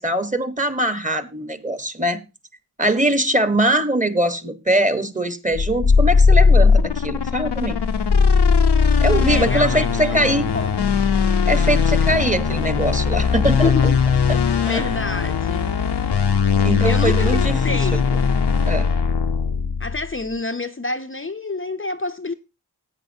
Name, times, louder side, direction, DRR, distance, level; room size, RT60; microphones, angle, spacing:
voice 1, 0.0-2.2 2.8-7.8 9.0-10.5 11.5-13.9 14.3-14.4 14.7-14.9 16.6-17.8 18.6-18.9, right 1 dB, 20° right, 1.3 m, -22 dB
sound 1, 5.5-20.1, left 5 dB, 85° left, 0.9 m, -18 dB
voice 2, 9.2-10.2 10.5-11.0 13.6-14.0 14.5-15.7 16.5-17.4 17.6-18.2 19.8-22.3, left 3 dB, 30° left, 0.7 m, -28 dB
15.0 x 9.0 x 2.8 m
wide cardioid pair, 80°, 39 cm